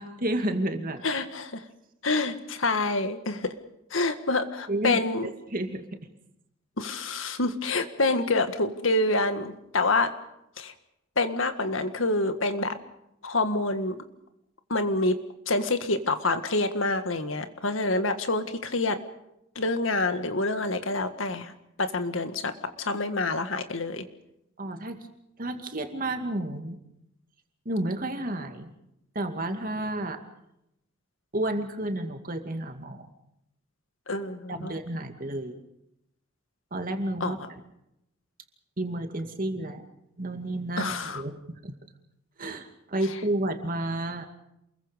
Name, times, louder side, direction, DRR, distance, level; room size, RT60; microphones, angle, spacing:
voice 1, 0.0-1.0 4.7-6.0 24.6-25.1 25.4-26.8 27.6-28.7 29.1-30.2 31.3-33.1 34.5-35.5 36.7-37.4 38.8-39.8 40.2-41.7 42.4-44.3, right 1 dB, 45° right, 5 dB, 2.4 m, -31 dB
voice 2, 1.0-1.7 2.0-3.5 3.9-5.3 6.8-10.1 10.6-10.7 11.2-12.8 13.2-14.0 14.7-15.2 15.5-19.0 19.6-21.5 21.8-24.1 34.1-34.7 37.2-37.3 40.8-41.2, left 2 dB, 85° left, 9 dB, 1.8 m, -27 dB
28.0 x 22.0 x 5.2 m, 0.81 s
head